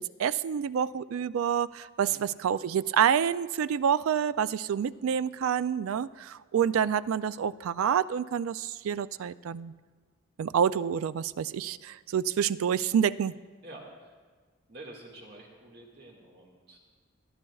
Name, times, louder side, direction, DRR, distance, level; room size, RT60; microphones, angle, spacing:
voice 1, 0.0-9.8 10.4-13.3, right 8 dB, 85° right, 16 dB, 0.3 m, -28 dB
voice 2, 13.6-14.1 14.7-16.8, right 2 dB, 50° right, -2 dB, 1.9 m, -48 dB
22.0 x 13.0 x 2.3 m, 1.5 s
head